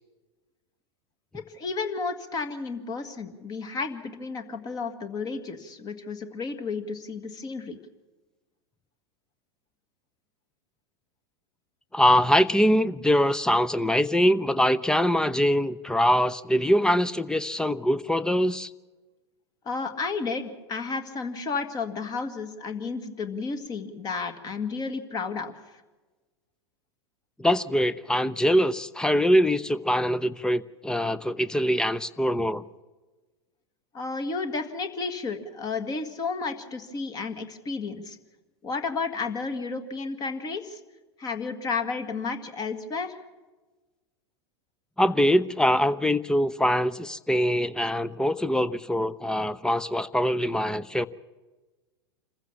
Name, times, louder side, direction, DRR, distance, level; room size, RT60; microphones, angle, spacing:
voice 1, 1.3-7.8 19.7-25.8 33.9-38.2 38.6-40.8 41.2-43.2, left 4 dB, 30° left, 9 dB, 1.8 m, -32 dB
voice 2, 11.9-18.7 27.4-32.6 45.0-51.1, equal, 5° left, 16 dB, 0.6 m, -23 dB
26.5 x 15.0 x 7.1 m, 1.2 s
figure-of-eight pair, 90°, 14 cm